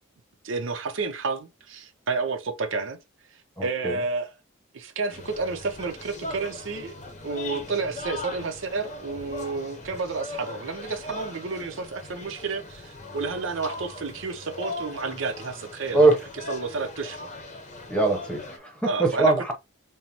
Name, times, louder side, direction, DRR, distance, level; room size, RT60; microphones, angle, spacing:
voice 1, 0.4-3.0 3.6-4.3 4.7-6.9 7.2-16.1 16.5-17.3 18.8-19.3, right 4 dB, 65° right, 0.7 m, -30 dB
voice 2, 3.6-4.0 15.9-16.2 17.9-19.5, right 3 dB, 5° left, 0.9 m, -22 dB
sound 1, 5.1-18.6, left 2 dB, 35° left, 0.8 m, -39 dB
5.5 x 2.0 x 2.8 m
head